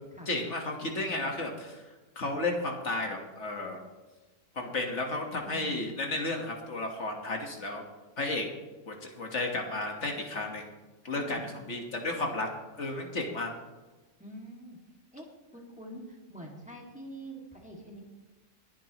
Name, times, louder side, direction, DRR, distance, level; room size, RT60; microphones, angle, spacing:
voice 1, 0.3-1.8 2.2-3.8 4.6-7.8 8.2-8.5 8.9-10.7 11.0-12.5 12.8-13.5, left 2 dB, 60° left, 2 dB, 1.8 m, -33 dB
voice 2, 5.4-5.8 11.1-11.5 14.2-14.8 15.1-15.3 15.5-18.0, right 1 dB, 5° right, -2 dB, 2.1 m, -45 dB
21.0 x 9.3 x 3.0 m, 1.2 s
omnidirectional pair, 1.3 m